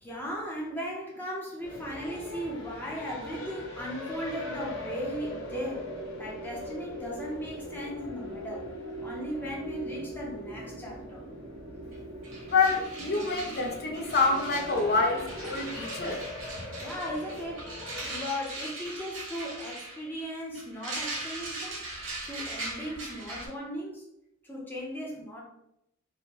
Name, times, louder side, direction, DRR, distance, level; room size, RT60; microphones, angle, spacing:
voice 1, 0.0-5.9 6.2-8.7 9.0-11.2 16.8-17.7 18.0-21.8 22.2-24.0 24.4-25.4, equal, 10° left, -3 dB, 0.7 m, -37 dB
sound 1, 1.6-18.2, left 2 dB, 75° left, 0.9 m, -42 dB
sound 2, 5.2-15.7, right 1 dB, 40° right, 0.6 m, -43 dB
sound 3, 11.9-12.0 12.2-23.5, right 2 dB, 70° right, 0.9 m, -40 dB
voice 2, 12.5-16.2, left 4 dB, 50° left, 2 dB, 0.6 m, -27 dB
3.4 x 2.2 x 2.9 m, 0.79 s
head